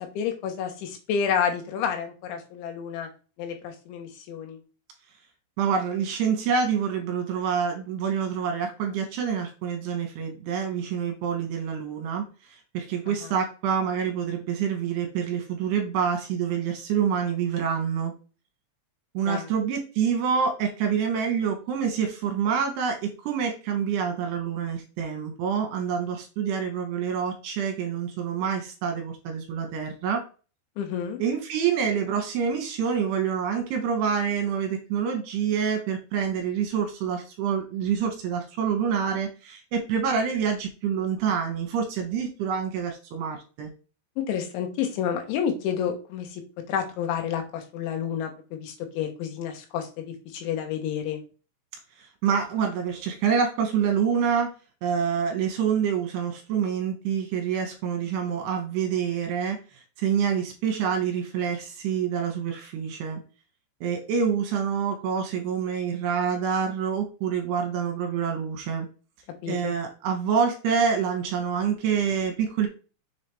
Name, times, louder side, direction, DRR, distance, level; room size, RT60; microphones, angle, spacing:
voice 1, 0.0-3.1 3.4-4.6 13.1-13.3 19.3-19.5 30.8-31.2 44.2-46.4 46.7-51.2 69.4-69.8, left 8 dB, 80° left, 4 dB, 3.4 m, -30 dB
voice 2, 5.6-18.1 19.1-30.2 31.2-43.7 52.0-54.5 54.8-63.2 63.8-68.9 69.5-72.7, right 7 dB, 70° right, 4 dB, 2.8 m, -27 dB
7.0 x 4.8 x 3.3 m, 0.34 s
omnidirectional pair, 5.5 m